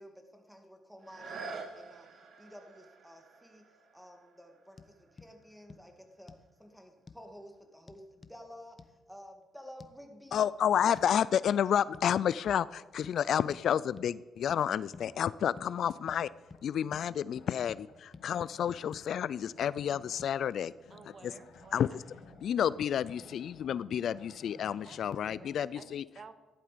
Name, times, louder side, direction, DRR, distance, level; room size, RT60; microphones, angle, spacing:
voice 1, 0.0-2.1 2.4-3.7 3.9-8.0 8.3-10.4 10.7-10.9, equal, ahead, 3 dB, 2.2 m, -52 dB
sound 1, 1.0-6.6 7.2-7.3, right 4 dB, 60° right, 1.8 m, -48 dB
sound 2, 4.8-4.9 5.2-5.3 5.7-5.8 6.3-6.5 7.1-7.2 7.9-8.4 8.8-8.9 9.8-9.9 10.3-10.5 11.0-11.1 11.5-11.6 11.9-12.1 12.5-12.7 13.0-13.2 13.5-13.6 14.0-14.1 14.5-14.6 14.9-15.1 15.6-15.7 16.1-16.2 16.5-16.6 16.9-17.1 17.4-17.8 18.1-18.2 18.7-19.1 19.8-19.9 20.2-20.3, left 4 dB, 30° left, 0.9 m, -51 dB
voice 2, 10.3-16.3 16.6-20.7 21.7-21.9 22.4-26.0, left 9 dB, 65° left, 19 dB, 0.3 m, -30 dB
sound 3, 14.9-25.6, left 3 dB, 90° left, 3.0 m, -57 dB
voice 3, 20.9-22.0 24.8-26.3, right 5 dB, 45° right, 11 dB, 1.0 m, -53 dB
14.5 x 11.5 x 5.1 m, 1.2 s
cardioid pair, 90°, 0 cm